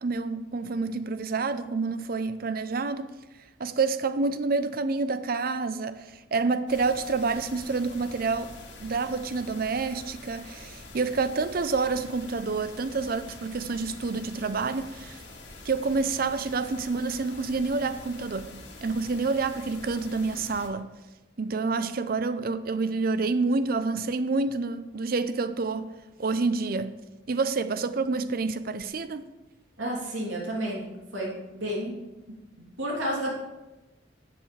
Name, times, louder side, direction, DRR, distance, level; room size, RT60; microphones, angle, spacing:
voice 1, 0.0-3.1 3.6-8.5 8.8-15.2 15.6-20.9 21.4-26.9 27.3-29.2, right 4 dB, 50° right, 0.5 m, -28 dB
sound 1, 6.7-20.7, left 2 dB, 65° left, 1.8 m, -46 dB
voice 2, 29.8-30.9 31.1-32.0 32.8-33.3, right 1 dB, 85° right, 3.0 m, -31 dB
13.0 x 8.0 x 3.3 m
head